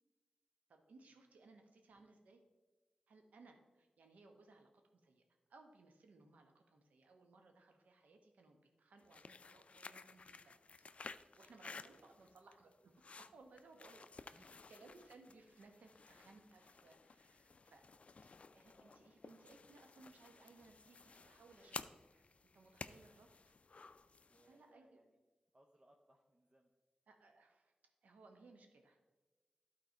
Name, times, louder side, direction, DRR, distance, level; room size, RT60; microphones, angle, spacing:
voice 1, 0.7-2.4 3.1-5.2 5.5-10.8 11.3-12.9 13.2-17.8 18.5-22.2 22.5-23.5 24.5-25.0 27.1-27.7 28.0-29.1, right 3 dB, 85° right, 4 dB, 1.0 m, -63 dB
sound 1, 9.0-24.6, left 4 dB, 55° left, 0.4 m, -55 dB
voice 2, 11.7-12.1 14.0-14.8 18.7-19.1 24.3-25.2 25.5-26.7, right 1 dB, 40° right, 1 dB, 0.8 m, -70 dB
12.0 x 4.4 x 4.4 m, 1.2 s
cardioid pair, 40°, 3 cm